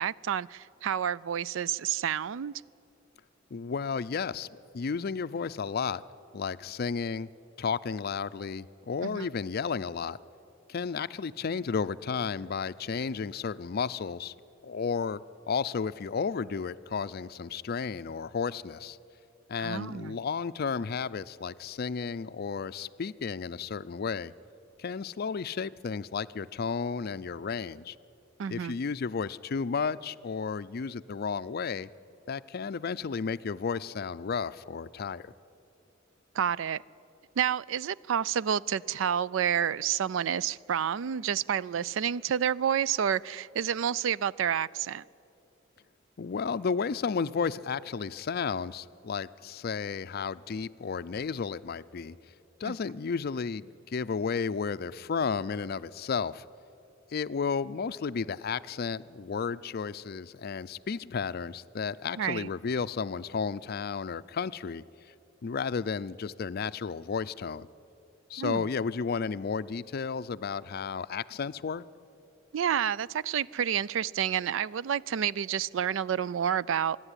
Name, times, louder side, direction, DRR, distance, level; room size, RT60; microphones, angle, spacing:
voice 1, 0.0-2.5 9.0-9.3 19.6-20.2 28.4-28.8 36.3-36.8 37.4-45.0 52.7-52.8 62.2-62.5 68.4-68.6 72.5-77.0, right 8 dB, 75° right, 0.4 m, -29 dB
voice 2, 3.5-4.5 4.7-6.0 6.3-7.3 7.6-10.2 10.7-14.3 14.6-19.0 19.5-24.3 24.8-28.0 28.5-31.9 32.3-35.3 46.2-52.2 52.6-56.4 57.1-64.8 65.4-67.7 68.3-71.8, left 5 dB, 50° left, 0.4 m, -33 dB
25.5 x 11.0 x 9.8 m
head